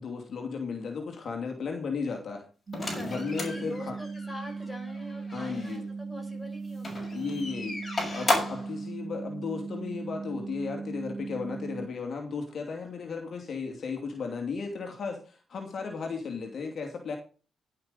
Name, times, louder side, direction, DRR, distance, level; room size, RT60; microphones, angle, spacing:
voice 1, 0.0-2.5 2.9-4.0 5.3-5.8 7.1-7.8 8.1-17.2, left 5 dB, 55° left, 3 dB, 2.7 m, -35 dB
sound 1, 2.7-5.8 6.7-8.7, left 2 dB, 30° left, 6.6 m, -34 dB
sound 2, 2.7-11.9, right 4 dB, 40° right, 2.1 m, -38 dB
voice 2, 2.9-7.4, equal, 5° left, 4 dB, 5.4 m, -44 dB
11.0 x 8.6 x 5.3 m, 0.36 s
cardioid pair, 85°, 0 cm